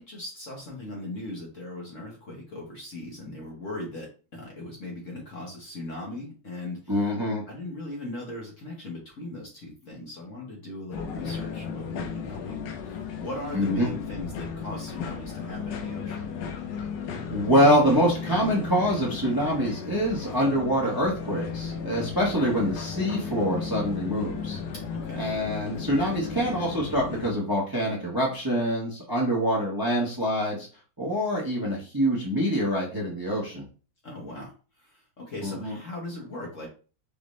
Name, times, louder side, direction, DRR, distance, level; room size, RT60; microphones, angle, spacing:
voice 1, 0.0-6.9 7.5-16.3 24.9-25.2 34.0-36.7, left 2 dB, 45° left, -2 dB, 1.2 m, -39 dB
voice 2, 6.9-7.4 13.5-13.9 17.3-24.6 25.1-30.7 31.0-33.6 35.4-35.8, equal, 15° right, -3 dB, 0.8 m, -25 dB
sound 1, 10.9-27.3, left 6 dB, 70° left, 1.2 m, -35 dB
5.0 x 2.7 x 3.1 m, 0.36 s
omnidirectional pair, 2.2 m